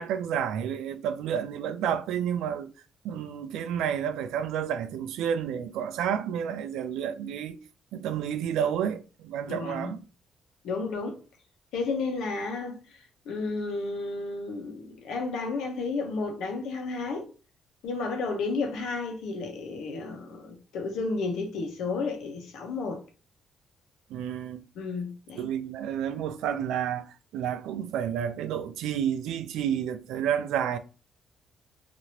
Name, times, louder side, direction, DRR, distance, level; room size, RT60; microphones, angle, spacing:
voice 1, 0.0-2.7 3.0-7.6 7.9-10.0 24.1-24.6 25.4-30.8, right 9 dB, 90° right, 0.4 m, -30 dB
voice 2, 9.5-9.9 10.6-11.2 11.7-13.0 13.3-17.3 17.8-23.0 24.8-25.5, left 3 dB, 85° left, 0.8 m, -32 dB
2.8 x 2.6 x 2.9 m
cardioid pair, 90°, 0 cm